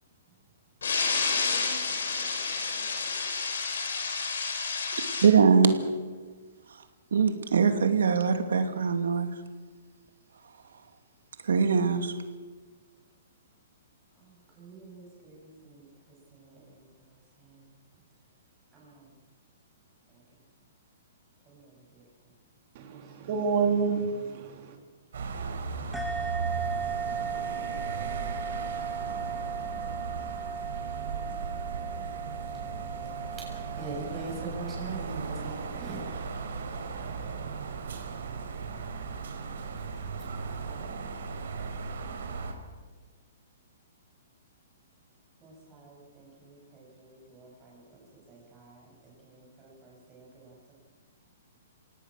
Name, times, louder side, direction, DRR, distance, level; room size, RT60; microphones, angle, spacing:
voice 1, 0.8-5.3, left 4 dB, 80° left, 4 dB, 5.8 m, -30 dB
voice 2, 5.2-5.8 6.7-6.8 7.1-9.3 11.4-12.1, right 6 dB, 90° right, 7 dB, 2.5 m, -22 dB
voice 3, 14.6-15.8 16.3-16.6 18.8-19.0 21.5-21.6 21.9-22.0 22.9-23.3 26.1-26.5 31.1-31.9 33.7-36.1 40.6-40.8 45.4-47.8 48.3-50.7, right 3 dB, 15° right, -3 dB, 7.7 m, -45 dB
voice 4, 22.7-24.8, right 5 dB, 40° right, 4 dB, 3.0 m, -28 dB
sound 1, 25.1-42.5, right 5 dB, 70° right, 4.1 m, -37 dB
sound 2, 25.9-35.0, right 6 dB, ahead, 1.5 m, -36 dB
26.5 x 17.5 x 6.6 m, 1.4 s
hypercardioid pair, 165°, 0 cm